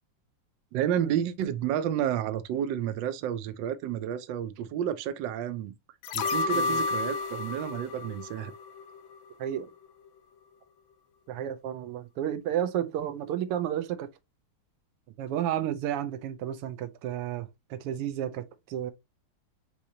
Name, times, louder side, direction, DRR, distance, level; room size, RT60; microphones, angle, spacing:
voice 1, 0.7-5.7 6.1-8.5, right 10 dB, 70° right, 1.2 m, -30 dB
sound 1, 6.0-9.2 9.5-9.6, left 4 dB, 75° left, 1.4 m, -31 dB
voice 2, 11.3-14.1 15.2-18.9, right 10 dB, 90° right, 1.6 m, -32 dB
6.4 x 2.8 x 2.7 m
omnidirectional pair, 2.4 m